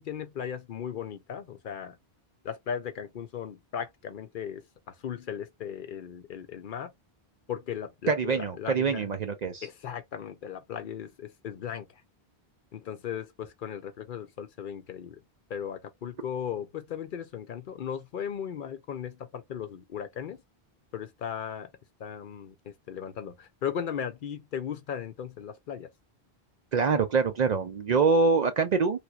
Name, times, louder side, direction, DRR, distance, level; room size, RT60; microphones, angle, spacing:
voice 1, 0.0-2.0 2.4-6.9 7.5-9.1 9.6-12.0 12.7-15.2 15.5-20.4 20.9-21.7 22.0-25.9, left 8 dB, 60° left, 0.6 m, -37 dB
voice 2, 8.1-9.7 26.7-29.0, right 4 dB, 55° right, 0.5 m, -25 dB
3.3 x 2.9 x 2.3 m
omnidirectional pair, 1.0 m